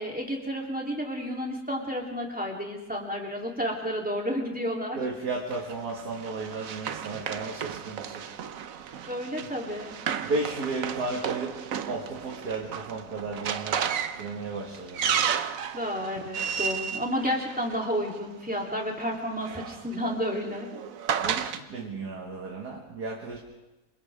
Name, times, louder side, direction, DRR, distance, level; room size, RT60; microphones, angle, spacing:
voice 1, 0.0-5.0 9.1-9.9 15.7-20.7, equal, 5° right, -1 dB, 3.3 m, -31 dB
voice 2, 5.0-8.2 9.4-9.5 10.2-11.6 11.9-13.9 14.1-15.0 21.2-23.4, right 3 dB, 85° right, -1 dB, 2.6 m, -34 dB
Run, 5.5-18.1 19.1-21.6, right 8 dB, 65° right, 1.2 m, -33 dB
28.0 x 26.0 x 3.7 m, 1.0 s
omnidirectional pair, 1.7 m